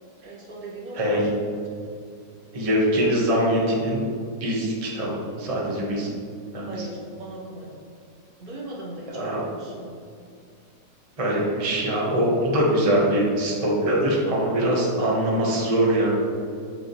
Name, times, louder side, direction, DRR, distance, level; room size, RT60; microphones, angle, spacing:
voice 1, 0.2-1.2 1.7-1.8 6.7-7.8 8.4-9.9, right 1 dB, 55° right, -4 dB, 1.6 m, -38 dB
voice 2, 1.0-1.3 2.5-4.0 4.4-6.1 6.5-6.9 9.1-9.4 11.2-16.1, right 1 dB, 20° right, -4 dB, 1.3 m, -23 dB
8.0 x 7.5 x 3.2 m, 2.4 s
omnidirectional pair, 2.0 m